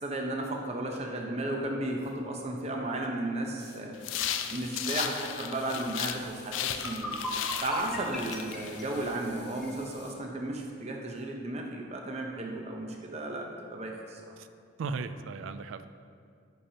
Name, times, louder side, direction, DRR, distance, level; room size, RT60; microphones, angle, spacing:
voice 1, 0.0-4.0 4.5-7.2 7.6-14.3, right 1 dB, 35° right, 1 dB, 0.7 m, -34 dB
sound 1, 2.0-2.1 3.6-7.0 7.3-10.2 11.2-11.3, left 4 dB, 60° left, 1.2 m, -54 dB
sound 2, 4.0-6.2 6.5-9.1, left 9 dB, 80° left, 0.4 m, -35 dB
sound 3, 6.7-9.8, equal, ahead, 0.9 m, -38 dB
voice 2, 14.8-15.9, right 4 dB, 80° right, 11 dB, 0.3 m, -36 dB
10.0 x 5.8 x 2.8 m, 2.3 s
head